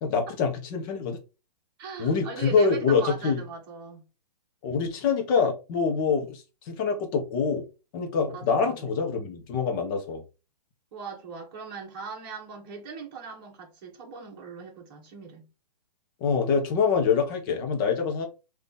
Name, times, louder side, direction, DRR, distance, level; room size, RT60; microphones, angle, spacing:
voice 1, 0.0-1.2 2.0-3.4 4.6-7.7 7.9-10.2 16.2-18.3, left 5 dB, 30° left, 1.1 m, -25 dB
voice 2, 1.8-4.1 8.3-8.9 10.9-15.5, right 5 dB, 35° right, 1.6 m, -40 dB
4.0 x 2.8 x 3.7 m
hypercardioid pair, 155°, 21 cm